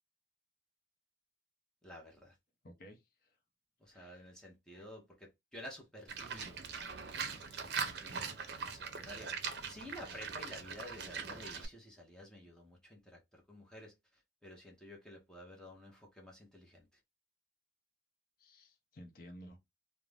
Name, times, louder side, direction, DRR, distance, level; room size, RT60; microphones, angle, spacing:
voice 1, 1.8-2.3 3.8-6.6 7.5-13.9 14.4-16.9, equal, 5° left, 0.7 m, -52 dB
voice 2, 2.6-3.4 3.9-4.3 4.7-4.9 18.4-19.6, equal, 55° left, 0.7 m, -55 dB
Livestock farm animals working animals, 6.1-11.7, right 5 dB, 65° right, 0.5 m, -41 dB
2.5 x 2.1 x 3.2 m
head